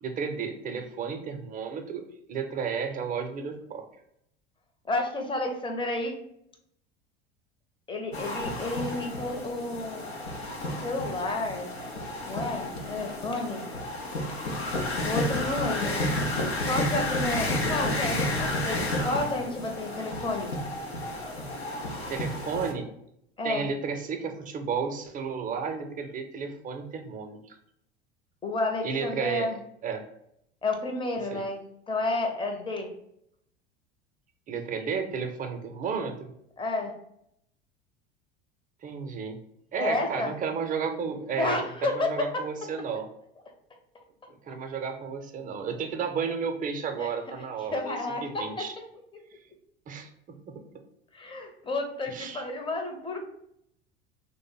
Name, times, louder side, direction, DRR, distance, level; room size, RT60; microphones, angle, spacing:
voice 1, 0.0-2.0 2.3-3.8 22.1-22.9 23.4-27.6 28.8-29.5 29.8-30.0 31.3-31.4 34.5-36.2 38.8-39.4 39.7-43.1 44.5-48.0 48.2-48.7 49.9-50.6 52.1-52.4, right 6 dB, 25° right, 5 dB, 0.6 m, -32 dB
voice 2, 4.9-6.1 7.9-10.1 10.7-11.7 12.3-13.6 15.0-16.0 16.6-20.5 23.4-23.7 28.4-29.6 30.6-31.6 31.9-32.9 36.6-36.9 39.8-40.3 41.4-42.1 47.0-47.1 47.7-48.7 49.1-49.2 51.1-53.2, left 2 dB, 15° left, 3 dB, 0.7 m, -31 dB
sound 1, 8.1-22.7, left 1 dB, 85° left, 0.7 m, -31 dB
3.2 x 2.1 x 4.0 m, 0.75 s
hypercardioid pair, 75°, 31 cm